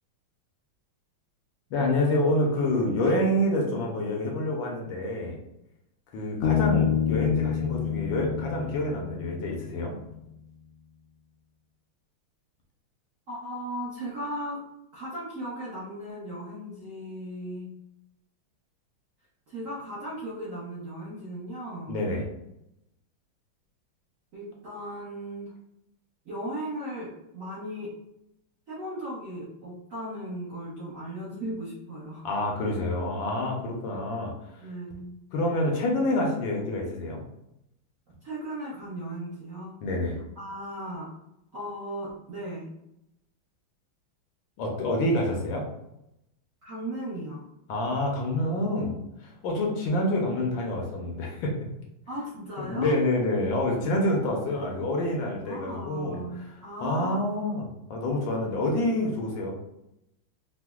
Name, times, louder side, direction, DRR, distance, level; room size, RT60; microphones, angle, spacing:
voice 1, 1.7-5.4 6.1-10.0 21.9-22.2 32.2-34.7 35.3-37.2 39.8-40.2 44.6-45.7 47.7-51.6 52.6-59.5, left 1 dB, 75° left, 0 dB, 1.3 m, -27 dB
Bass guitar, 6.4-10.0, left 8 dB, 90° left, 1.5 m, -28 dB
voice 2, 13.3-14.6 14.9-17.7 19.5-22.0 24.3-25.5 26.2-27.9 28.7-32.3 34.6-35.1 38.2-39.8 40.4-41.1 41.5-42.7 46.6-47.4 52.1-52.9 55.4-57.2, right 1 dB, 60° right, -7 dB, 0.9 m, -37 dB
4.9 x 2.0 x 2.2 m, 0.84 s
omnidirectional pair, 2.3 m